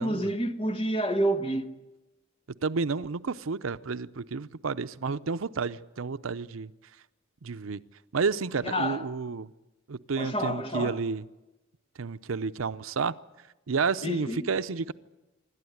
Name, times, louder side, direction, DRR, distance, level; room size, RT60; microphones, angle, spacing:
voice 1, 0.0-1.7 8.6-9.0 10.2-11.0 14.0-14.5, right 1 dB, 25° left, 1.3 m, -29 dB
voice 2, 2.6-6.7 7.4-7.8 8.1-9.5 9.9-11.2 12.0-13.1 13.7-14.9, right 5 dB, 85° right, 0.6 m, -31 dB
27.0 x 12.5 x 9.5 m
head